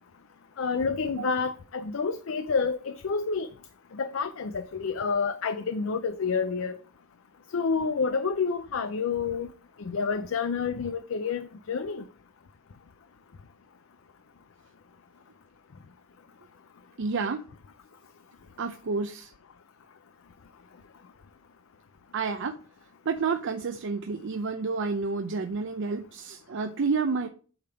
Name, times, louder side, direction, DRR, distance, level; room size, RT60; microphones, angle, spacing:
voice 1, 0.6-3.5 3.9-6.8 7.5-9.5 9.8-12.1, left 5 dB, 70° left, 0.5 m, -29 dB
voice 2, 17.0-17.4 18.6-19.3 22.1-22.5 23.1-27.3, right 4 dB, 60° right, 0.5 m, -29 dB
8.6 x 3.5 x 5.7 m
head